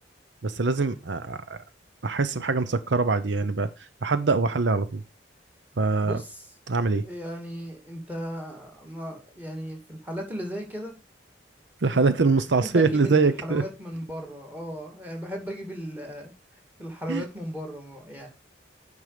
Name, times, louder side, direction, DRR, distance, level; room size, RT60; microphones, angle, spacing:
voice 1, 0.4-1.6 2.0-3.7 4.0-5.0 5.8-6.2 6.7-7.0 11.8-13.6 17.1-17.2, right 4 dB, 70° right, 12 dB, 0.7 m, -23 dB
voice 2, 6.0-6.5 7.0-10.9 12.5-16.3 16.8-18.3, equal, 10° right, 3 dB, 2.6 m, -36 dB
9.5 x 5.4 x 5.0 m, 0.27 s
head